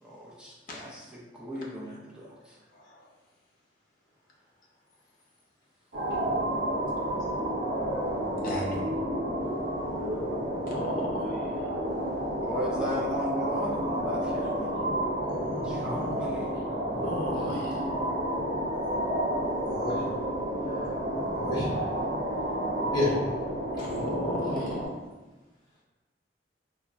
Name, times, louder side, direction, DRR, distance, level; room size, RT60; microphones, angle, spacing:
voice 1, 0.0-2.6 12.4-14.7 15.6-16.6, left 1 dB, 5° right, -5 dB, 0.5 m, -36 dB
sound 1, 5.9-24.9, right 1 dB, 55° right, 0.8 m, -30 dB
voice 2, 8.4-8.8 10.7-11.5 15.3-16.1 16.9-17.7 23.7-24.8, left 1 dB, 50° left, -3 dB, 0.6 m, -34 dB
voice 3, 19.4-20.0 20.7-21.7 22.8-23.1, left 2 dB, 25° left, -7 dB, 0.8 m, -31 dB
3.0 x 2.1 x 2.5 m, 1.2 s
head